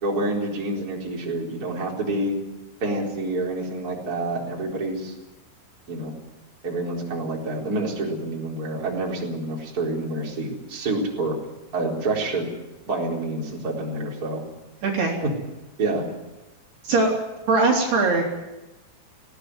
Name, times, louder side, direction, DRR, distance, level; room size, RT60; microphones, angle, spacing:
voice 1, 0.0-2.4 2.8-5.1 5.9-6.1 6.6-11.4 11.7-12.5 12.9-14.4 15.2-15.3 15.8-16.0, right 2 dB, 20° right, -2 dB, 3.9 m, -27 dB
voice 2, 14.8-15.2 16.8-17.2 17.5-18.2, right 3 dB, 55° right, -1 dB, 4.6 m, -20 dB
19.5 x 17.0 x 9.6 m, 1.0 s
omnidirectional pair, 5.9 m